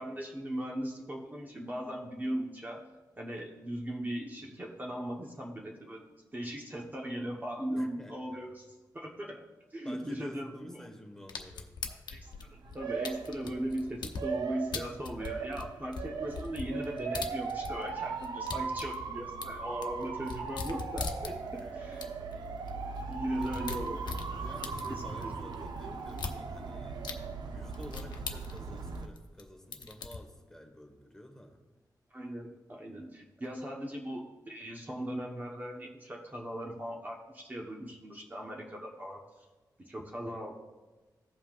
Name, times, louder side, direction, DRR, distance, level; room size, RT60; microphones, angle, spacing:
voice 1, 0.0-2.8 3.2-6.1 6.3-8.7 8.9-9.4 9.7-10.9 11.9-22.0 23.1-24.0 25.2-25.3 32.1-39.2 39.8-40.5, right 1 dB, 25° right, -1 dB, 1.0 m, -38 dB
voice 2, 7.8-8.4 9.8-11.7 21.5-22.0 23.4-23.5 24.3-27.0 27.5-31.6 40.2-40.5, equal, 5° left, 2 dB, 1.3 m, -51 dB
sound 1, 11.3-14.2 14.7-17.9 18.2-21.6 22.0-22.1 22.3-22.4 22.7-22.8 23.1-25.2 26.1-26.4 27.0-27.1 27.7-29.4 29.7-30.2, left 5 dB, 80° left, 0.8 m, -40 dB
Motor vehicle (road) / Siren, 12.2-29.1, right 5 dB, 70° right, 0.7 m, -39 dB
16.0 x 5.6 x 2.4 m, 1.2 s
wide cardioid pair, 115°, 7 cm